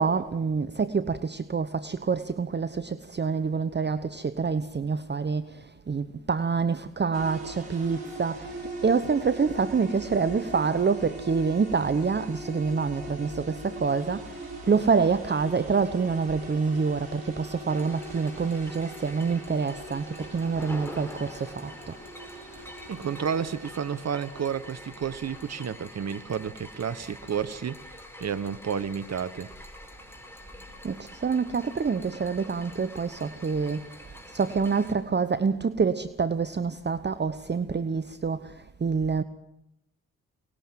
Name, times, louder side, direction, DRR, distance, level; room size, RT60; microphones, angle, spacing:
voice 1, 0.0-22.0 22.5-22.6 30.8-39.2, right 5 dB, 30° right, 1.0 m, -27 dB
sound 1, 7.1-25.7, right 2 dB, 90° right, 3.5 m, -41 dB
sound 2, 17.7-34.9, left 1 dB, 5° left, 4.9 m, -46 dB
voice 2, 22.9-27.8 28.2-29.5, right 7 dB, 45° right, 1.2 m, -31 dB
23.5 x 19.5 x 7.6 m
hypercardioid pair, 40°, 35 cm